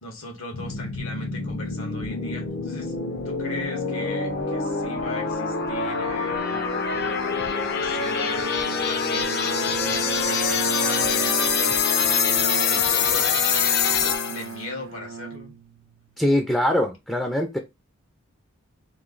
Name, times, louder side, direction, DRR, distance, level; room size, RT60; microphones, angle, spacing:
voice 1, 0.0-2.9 3.2-9.5 9.8-11.9 12.6-13.4 14.3-15.5, left 2 dB, 85° left, 1.4 m, -39 dB
sound 1, 0.5-14.5, left 5 dB, 50° left, 0.6 m, -25 dB
Bowed string instrument, 7.7-16.2, right 6 dB, 90° right, 0.5 m, -36 dB
voice 2, 16.2-17.6, left 1 dB, 5° left, 0.4 m, -22 dB
3.1 x 2.7 x 3.8 m
head